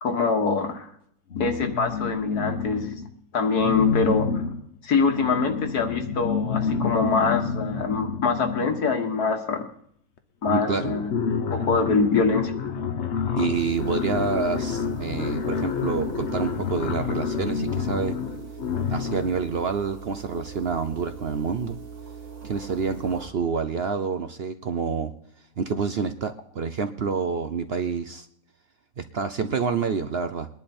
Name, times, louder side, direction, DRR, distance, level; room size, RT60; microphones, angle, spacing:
voice 1, 0.0-0.9 1.4-3.0 3.3-4.4 4.8-9.7 10.4-11.1 11.5-12.5, left 4 dB, 80° left, 5 dB, 2.1 m, -24 dB
sound 1, 1.3-3.1 3.6-9.2 10.2-10.3 10.5-19.4, left 6 dB, 50° left, 1.2 m, -29 dB
voice 2, 10.5-10.9 13.4-18.2 18.9-21.8 22.4-25.1 25.6-28.3 29.0-30.5, right 5 dB, 50° right, 10 dB, 0.8 m, -28 dB
sound 2, 13.5-23.3, right 6 dB, 70° right, 2.2 m, -41 dB
21.5 x 11.0 x 4.3 m, 0.69 s
omnidirectional pair, 1.6 m